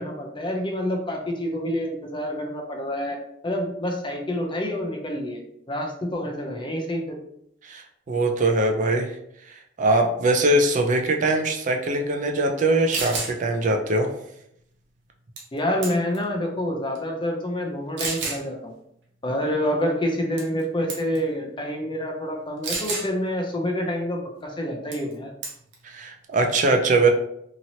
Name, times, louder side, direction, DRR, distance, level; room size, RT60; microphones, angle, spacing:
voice 1, 0.0-3.2 3.4-5.4 5.7-7.2 15.5-18.7 19.2-25.3, equal, 25° left, 1 dB, 0.5 m, -27 dB
voice 2, 7.6-9.2 9.8-14.1 25.8-27.1, right 2 dB, 45° right, 4 dB, 0.4 m, -22 dB
sound 1, 12.6-12.7 12.9-13.3 15.4-15.6 15.8-16.2 16.9-17.0 18.0-18.4 20.4-20.6 20.9-21.2 22.6-23.1 24.9-25.1 25.4-25.7, right 4 dB, 90° right, 0.7 m, -30 dB
2.9 x 2.8 x 2.7 m, 0.73 s
head